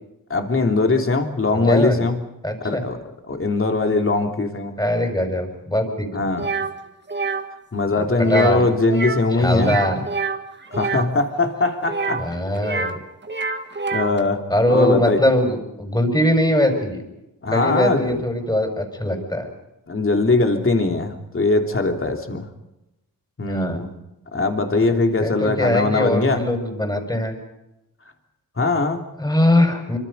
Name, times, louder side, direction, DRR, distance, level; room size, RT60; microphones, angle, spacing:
voice 1, 0.3-2.2 2.6-3.0 3.3-4.8 6.1-6.5 7.7-9.8 10.7-12.4 13.9-15.2 17.4-18.2 19.9-22.5 23.4-23.9 24.3-26.5 28.6-29.0, left 3 dB, 35° left, 4 dB, 3.0 m, -21 dB
voice 2, 1.5-2.1 2.4-2.8 4.8-6.1 8.2-8.6 9.4-10.0 12.2-13.0 14.5-17.0 17.5-19.5 23.5-23.8 25.2-27.3 29.2-30.0, left 1 dB, 10° left, 5 dB, 5.6 m, -21 dB
sound 1, 6.4-6.7 7.1-7.4 8.2-8.6 8.9-9.3 9.6-11.1 11.8-13.0 13.2-14.2, right 4 dB, 30° right, 1.8 m, -26 dB
26.5 x 25.0 x 5.4 m, 0.91 s
wide cardioid pair, 100°, 35 cm